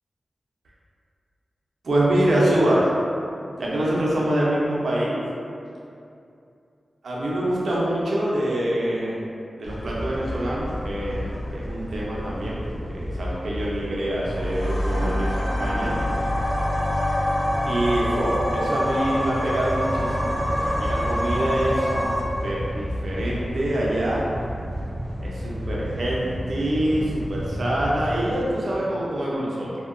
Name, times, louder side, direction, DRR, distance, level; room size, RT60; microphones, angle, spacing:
voice 1, 1.8-2.9 3.6-5.2 7.0-9.2 9.6-16.0 17.6-22.1 22.4-24.2 25.2-29.7, right 1 dB, 85° right, -5 dB, 0.5 m, -25 dB
sound 1, 9.6-28.5, equal, ahead, 0.4 m, -32 dB
sound 2, 14.2-22.2, equal, 75° left, 0.6 m, -25 dB
2.7 x 2.1 x 2.4 m, 2.6 s
wide cardioid pair, 95°, 0 cm